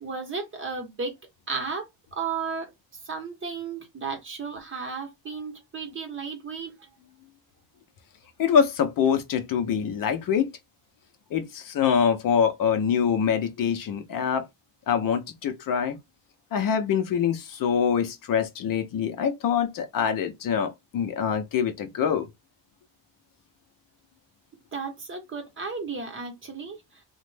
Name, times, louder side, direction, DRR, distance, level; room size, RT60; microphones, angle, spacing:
voice 1, 0.0-1.1 1.5-1.9 2.1-2.7 3.0-6.7 24.7-26.8, right 5 dB, 30° right, 0.8 m, -33 dB
voice 2, 8.4-10.5 11.3-14.4 14.9-16.0 16.5-22.3, left 7 dB, 50° left, 0.5 m, -24 dB
3.0 x 2.1 x 3.2 m
cardioid pair, 160°, 44 cm